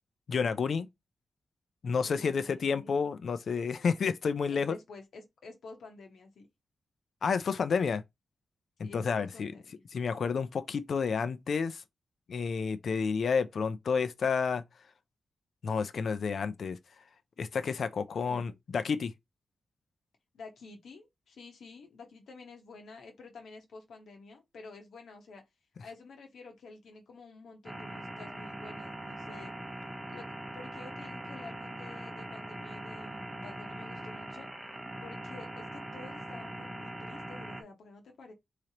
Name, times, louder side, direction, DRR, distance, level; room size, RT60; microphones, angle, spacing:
voice 1, 0.3-0.9 1.8-4.8 7.2-8.0 8.8-9.5 9.9-11.8 12.3-14.6 15.6-16.8 17.4-19.1, left 5 dB, 60° left, 0.4 m, -30 dB
voice 2, 2.0-3.0 4.5-6.5 8.8-9.7 18.2-18.5 20.3-25.4 25.8-29.5 30.1-34.5 35.0-38.3, left 3 dB, 90° left, 1.1 m, -50 dB
sound 1, 27.6-37.6, right 1 dB, 15° right, 0.7 m, -42 dB
3.8 x 3.2 x 2.9 m
wide cardioid pair, 135°, 0 cm